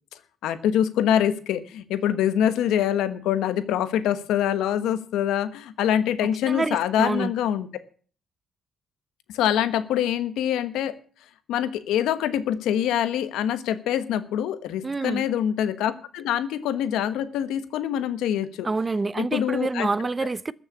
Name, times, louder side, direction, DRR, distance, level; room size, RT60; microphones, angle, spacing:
voice 1, 0.4-7.7 9.3-10.9 11.5-18.7 19.2-19.9, left 10 dB, 90° left, 1.2 m, -25 dB
voice 2, 6.5-7.3 14.8-15.2 18.6-20.5, right 3 dB, 25° right, 0.6 m, -27 dB
14.0 x 6.7 x 8.5 m
cardioid pair, 90°, 0 cm